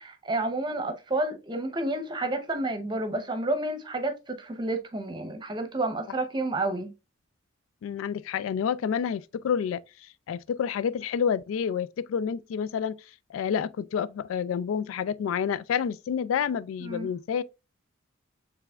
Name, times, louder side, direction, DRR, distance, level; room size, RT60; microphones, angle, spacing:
voice 1, 0.0-6.9 16.8-17.1, right 2 dB, 25° right, 0.8 m, -30 dB
voice 2, 7.8-9.8 10.3-12.9 13.3-17.4, left 7 dB, 85° left, 0.3 m, -29 dB
6.7 x 3.3 x 2.4 m
head